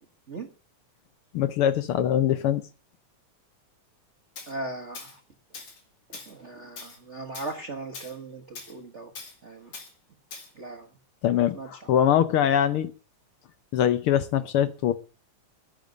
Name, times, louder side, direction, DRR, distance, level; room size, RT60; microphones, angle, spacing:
voice 1, 1.3-2.6 11.2-12.9 13.7-14.9, left 10 dB, 85° left, 13 dB, 1.2 m, -23 dB
Tools, 4.4-4.5 5.0-5.2 5.5-5.8 6.1-6.3 6.8-7.0 7.3-7.6 7.9-8.2 8.6-8.7 9.2-9.4 9.7-9.9 10.3-10.5, left 4 dB, 60° left, 3.7 m, -42 dB
voice 2, 4.5-5.2 6.1-9.2 9.4-9.7 10.5-10.9 11.5-11.9, right 2 dB, 70° right, 4 dB, 0.6 m, -38 dB
10.5 x 8.9 x 9.4 m, 0.38 s
omnidirectional pair, 3.5 m